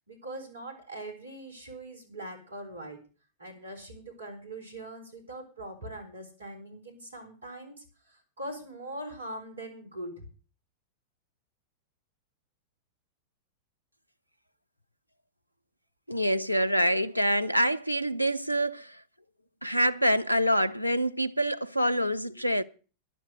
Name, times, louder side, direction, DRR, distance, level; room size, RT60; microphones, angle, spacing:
voice 1, 0.1-3.0 3.4-10.3 22.3-22.4, right 1 dB, 75° right, 4.2 m, -42 dB
voice 2, 16.1-19.0 19.6-22.6, equal, 90° left, 0.7 m, -26 dB
12.0 x 11.0 x 6.5 m
figure-of-eight pair, 90°, 0 cm